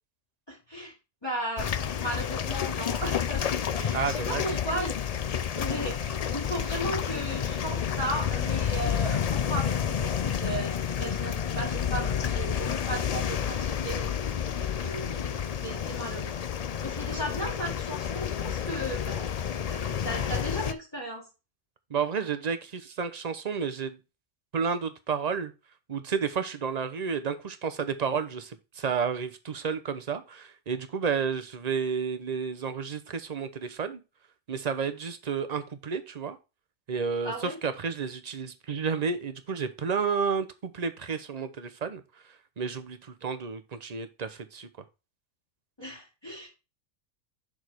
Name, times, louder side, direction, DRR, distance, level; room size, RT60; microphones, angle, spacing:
voice 1, 0.5-0.9 1.2-1.7 2.0-5.0 5.5-14.1 14.6-16.3 16.8-19.3 19.7-21.2 37.2-37.6 45.8-46.5, right 1 dB, 20° left, -4 dB, 2.0 m, -36 dB
sound 1, 1.6-20.7, left 8 dB, 60° left, 0.4 m, -30 dB
voice 2, 3.9-4.5 21.9-24.0 24.5-25.5 25.9-34.0 34.5-36.4 36.9-42.0 42.6-44.7, right 6 dB, 35° right, 10 dB, 0.8 m, -31 dB
6.3 x 4.9 x 4.6 m, 0.28 s
omnidirectional pair, 1.3 m